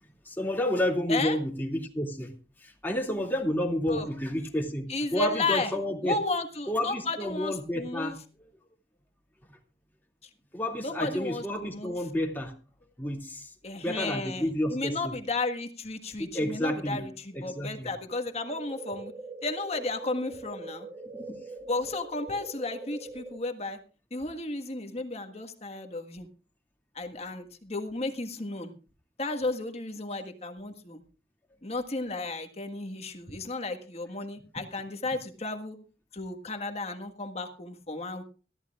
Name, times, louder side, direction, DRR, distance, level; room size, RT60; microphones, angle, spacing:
voice 1, 0.3-2.3 2.6-6.2 6.7-8.2 10.5-12.5 13.0-13.5 13.8-15.1 16.2-17.0 17.3-17.9 21.3-21.4 34.6-34.7, left 1 dB, 10° left, 0 dB, 2.4 m, -30 dB
voice 2, 4.9-5.7 6.0-8.2 10.8-12.0 13.6-19.1 19.4-20.9 21.7-23.8 24.1-26.3 26.9-28.7 29.2-31.0 31.6-35.8 36.1-38.2, left 2 dB, 35° left, 6 dB, 1.6 m, -33 dB
sound 1, 18.4-23.4, right 2 dB, 25° right, 1.0 m, -42 dB
22.0 x 14.0 x 2.5 m, 0.36 s
head